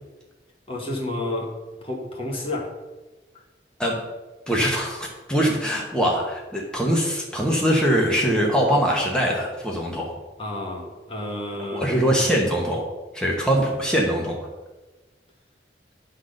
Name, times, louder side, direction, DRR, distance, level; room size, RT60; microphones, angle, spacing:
voice 1, 0.7-2.8 3.3-3.4 10.4-12.4, left 1 dB, 30° left, 0 dB, 1.2 m, -31 dB
voice 2, 4.5-10.1 11.7-12.8 13.1-14.4, equal, 5° left, -2 dB, 1.1 m, -22 dB
10.5 x 4.0 x 6.5 m, 1.2 s
head